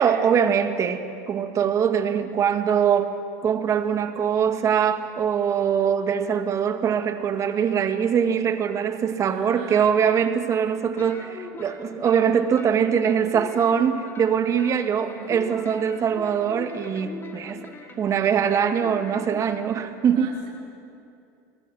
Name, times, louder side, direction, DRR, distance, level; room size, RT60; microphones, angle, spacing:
voice 1, 0.0-3.1 3.4-17.7 18.0-20.3, right 7 dB, 35° right, 8 dB, 1.8 m, -22 dB
voice 2, 9.3-9.9 15.0-15.5 20.1-20.5, right 5 dB, 70° right, -1 dB, 4.3 m, -42 dB
sound 1, 11.0-12.2 12.6-14.3 14.6-19.7, left 3 dB, 25° left, 2.8 m, -41 dB
30.0 x 20.5 x 6.3 m, 2.6 s
supercardioid pair, 115°, 9 cm